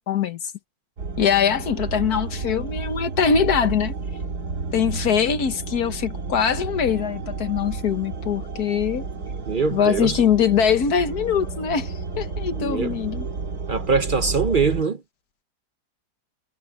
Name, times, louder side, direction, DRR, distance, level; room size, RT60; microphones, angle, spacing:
voice 1, 0.1-0.4 1.2-3.9 4.7-9.1 9.7-13.3, left 7 dB, 65° left, 1.8 m, -22 dB
sound 1, 1.0-14.8, right 4 dB, 65° right, 2.6 m, -31 dB
voice 2, 9.5-10.2 12.5-13.0 13.7-15.0, right 5 dB, 50° right, 0.6 m, -23 dB
omnidirectional pair, 1.8 m